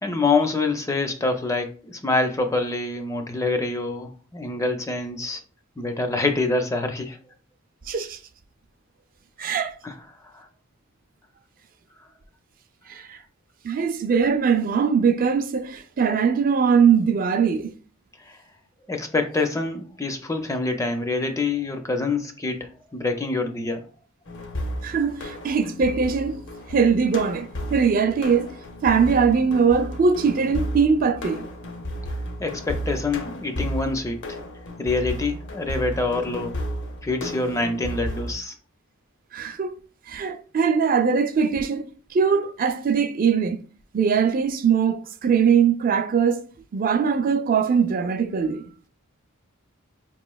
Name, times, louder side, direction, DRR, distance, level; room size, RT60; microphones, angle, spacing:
voice 1, 0.0-5.4 5.8-7.2 9.8-9.9 10.3-10.5 18.9-23.8 32.4-34.2 34.8-36.5 37.0-38.5, left 3 dB, 15° left, 0.4 m, -26 dB
voice 2, 7.9-8.2 9.4-9.8 12.9-13.2 13.6-17.7 24.8-26.4 26.7-28.5 28.8-31.5 39.3-39.8 40.1-41.9 42.1-43.6 43.9-46.4 46.7-48.6, right 6 dB, 45° right, 0.4 m, -21 dB
sound 1, 24.3-38.3, equal, 60° left, 0.7 m, -33 dB
5.0 x 3.0 x 2.2 m
head